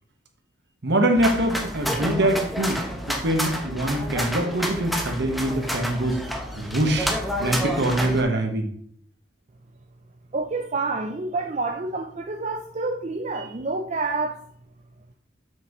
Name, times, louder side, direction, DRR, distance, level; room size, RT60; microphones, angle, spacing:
voice 1, 0.8-6.2 6.6-7.1 7.4-8.7, right 1 dB, 60° right, 1.2 m, -24 dB
sound 1, 1.2-8.2, equal, ahead, 0.8 m, -29 dB
voice 2, 10.3-14.4, right 3 dB, 35° right, 0.5 m, -28 dB
7.5 x 5.9 x 3.0 m
head